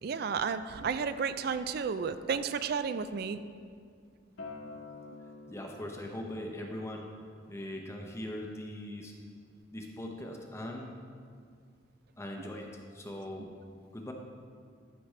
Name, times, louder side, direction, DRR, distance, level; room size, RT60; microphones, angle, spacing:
voice 1, 0.0-3.4, right 6 dB, 50° right, 12 dB, 0.3 m, -32 dB
Acoustic guitar, 4.4-9.6, left 3 dB, 75° left, 1.5 m, -50 dB
voice 2, 5.5-7.1 7.5-9.1 9.7-10.9 12.2-13.5 13.9-14.1, left 1 dB, 15° left, 1 dB, 0.6 m, -40 dB
13.0 x 5.9 x 3.2 m, 2.2 s
head